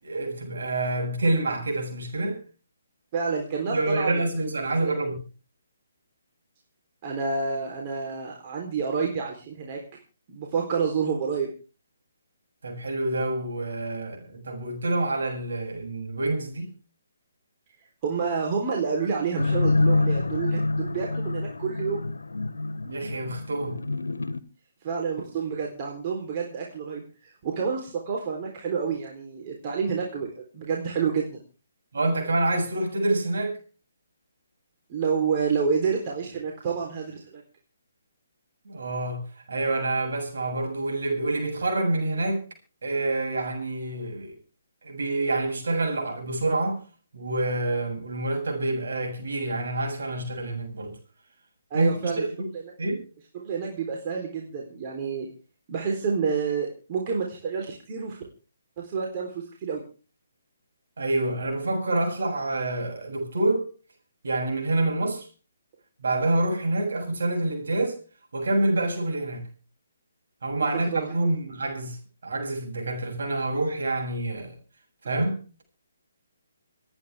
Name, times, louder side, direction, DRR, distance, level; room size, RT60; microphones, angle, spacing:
voice 1, 0.0-2.4 3.7-5.2 12.6-16.7 22.8-23.7 31.9-33.6 38.7-39.2 39.5-42.4 42.8-44.4 44.8-46.8 47.1-50.9 51.7-52.5 52.8-53.0 61.0-63.7 64.2-65.3 66.0-68.0 68.3-69.4 70.4-72.0 72.2-74.5 75.0-75.4, right 2 dB, 60° right, 7.6 m, -27 dB
voice 2, 3.1-4.5 4.8-4.9 7.0-9.8 10.3-11.5 18.0-22.0 24.8-31.4 34.9-37.4 51.7-52.2 53.3-55.3 55.7-58.2 58.8-59.8 70.5-71.1, right 5 dB, 35° right, 3.9 m, -29 dB
sound 1, 19.4-24.4, left 3 dB, 80° left, 1.3 m, -26 dB
28.0 x 9.8 x 3.6 m
figure-of-eight pair, 140°, 0 cm